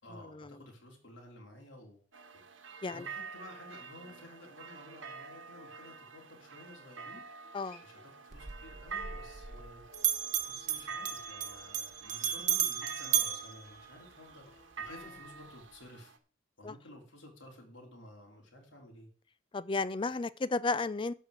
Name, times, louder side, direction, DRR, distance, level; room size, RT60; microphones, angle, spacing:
voice 1, 0.0-2.0 2.3-2.4 2.9-7.2 7.8-9.8 10.5-16.1 16.6-19.1, left 1 dB, 70° left, 3.6 m, -53 dB
sound 1, 2.1-16.2, right 5 dB, 80° right, 1.3 m, -48 dB
Acoustic guitar, 7.4-12.6 14.2-15.4, equal, 50° left, 3.6 m, -60 dB
Bell, 8.3-9.7 9.9-14.4, right 10 dB, 40° right, 1.2 m, -34 dB
voice 2, 19.5-21.1, left 3 dB, 25° left, 0.4 m, -32 dB
11.5 x 4.7 x 8.1 m
head